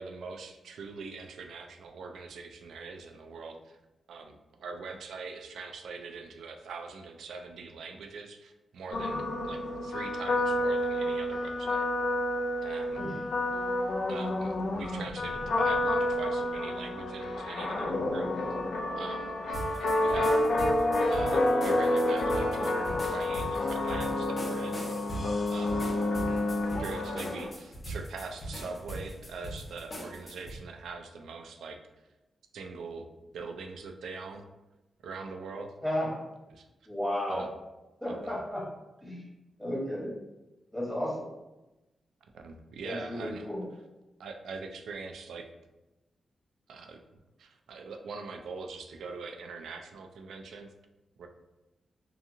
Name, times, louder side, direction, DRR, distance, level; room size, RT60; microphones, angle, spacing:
voice 1, 0.0-3.8 4.1-11.9 12.6-13.1 14.1-18.3 19.0-19.3 20.0-20.4 21.1-24.8 25.5-25.9 26.8-31.8 32.5-33.1 33.3-34.4 35.0-35.7 36.5-36.6 37.3-37.5 38.1-38.4 42.3-43.5 44.2-45.5 46.7-47.0 47.4-50.7 51.2-51.3, right 4 dB, 85° right, 5 dB, 0.3 m, -42 dB
sound 1, 8.9-27.5, left 1 dB, 75° left, 0.4 m, -29 dB
sound 2, 19.5-30.6, right 1 dB, 35° left, 0.7 m, -41 dB
voice 2, 35.8-36.2 36.9-37.4 38.0-38.6 39.0-39.2 39.6-40.1 40.7-41.2 42.8-43.6, left 1 dB, ahead, -7 dB, 1.0 m, -33 dB
2.8 x 2.3 x 2.6 m, 1.0 s
cardioid pair, 85°, 0 cm